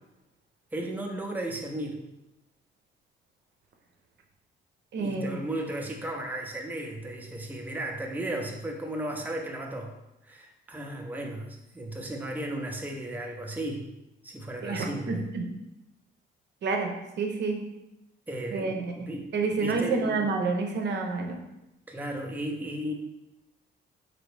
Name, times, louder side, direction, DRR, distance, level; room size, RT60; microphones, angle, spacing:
voice 1, 0.7-2.0 5.0-9.9 10.2-13.9 14.2-15.2 18.3-20.3 21.9-22.9, right 1 dB, 10° right, 1 dB, 0.6 m, -35 dB
voice 2, 4.9-5.4 14.6-15.4 16.6-16.9 17.2-17.6 18.5-18.9 19.3-21.4, right 4 dB, 60° right, 3 dB, 0.7 m, -28 dB
4.0 x 2.9 x 3.3 m, 0.95 s
cardioid pair, 90°, 20 cm